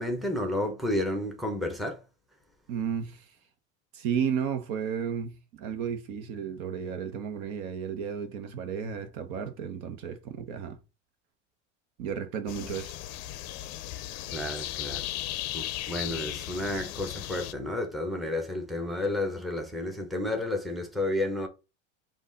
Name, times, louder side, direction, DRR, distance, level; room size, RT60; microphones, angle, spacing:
voice 1, 0.0-2.0 14.3-15.0 15.5-21.5, left 1 dB, ahead, 0.8 m, -31 dB
voice 2, 2.7-3.2 3.9-10.8 12.0-12.9, right 7 dB, 65° right, 1.1 m, -33 dB
sound 1, 12.5-17.5, left 15 dB, 45° left, 0.5 m, -36 dB
5.3 x 2.5 x 3.9 m
supercardioid pair, 130°, 37 cm